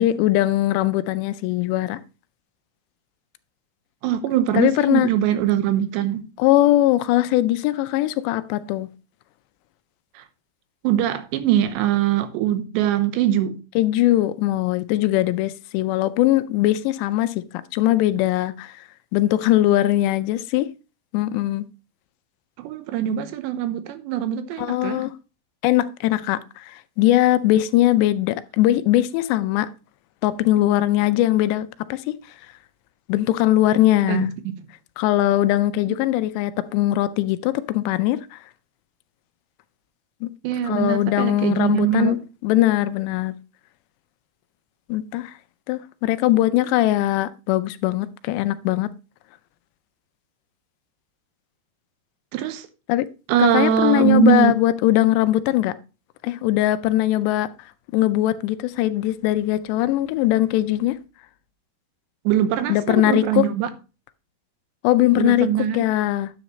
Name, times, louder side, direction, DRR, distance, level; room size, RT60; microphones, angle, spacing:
voice 1, 0.0-2.0 4.5-5.1 6.4-8.9 13.8-17.5 17.7-18.9 19.1-20.7 21.1-21.7 24.6-25.1 25.6-29.7 30.2-32.0 33.1-34.3 35.0-38.4 40.2-40.3 40.7-43.3 44.9-45.3 45.7-48.9 52.9-53.1 53.4-55.8 56.2-57.5 57.9-61.0 62.7-63.5 64.8-66.3, left 14 dB, 85° left, 2.7 m, -20 dB
voice 2, 4.0-6.2 10.2-10.3 10.8-13.6 22.6-25.0 34.1-34.3 35.9-36.0 40.4-42.2 52.3-52.7 53.3-54.6 62.3-63.7 65.2-65.8, right 10 dB, 85° right, 3.0 m, -22 dB
10.0 x 8.0 x 3.1 m
omnidirectional pair, 5.0 m